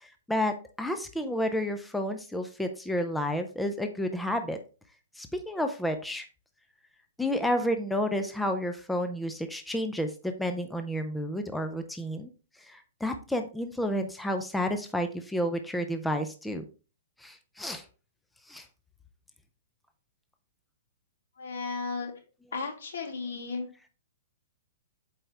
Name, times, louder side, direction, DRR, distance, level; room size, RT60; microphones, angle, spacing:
voice 1, 0.0-4.6 5.2-6.3 7.2-12.3 12.7-16.6 17.2-17.8 18.5-18.6, equal, 5° left, 7 dB, 0.4 m, -31 dB
voice 2, 21.4-22.1 22.5-23.7, left 4 dB, 80° left, 4 dB, 2.1 m, -34 dB
7.8 x 4.6 x 3.3 m, 0.35 s
hypercardioid pair, 170°, 0 cm